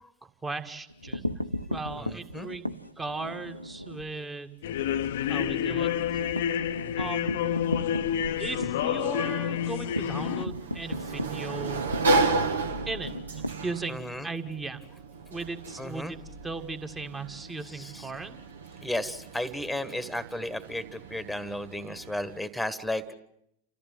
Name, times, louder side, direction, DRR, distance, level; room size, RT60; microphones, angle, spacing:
voice 1, 0.2-1.4 1.7-4.5 5.3-5.9 7.0-7.6 8.3-11.9 12.8-14.8 15.3-16.2 16.4-18.4, right 3 dB, 15° right, 7 dB, 1.9 m, -37 dB
sound 1, 0.9-4.1 4.5-4.7 5.0-5.1 5.4-14.2, left 1 dB, 90° left, 0.8 m, -36 dB
voice 2, 2.0-2.5 13.9-14.3 15.8-16.1 17.6-18.1 18.8-23.1, left 1 dB, ahead, 14 dB, 1.7 m, -34 dB
sound 2, 4.6-10.5, left 9 dB, 55° left, 0.8 m, -29 dB
Sliding door, 9.7-22.4, right 3 dB, 65° right, 1.6 m, -33 dB
29.5 x 14.5 x 9.3 m, 0.78 s
figure-of-eight pair, 90°, 0 cm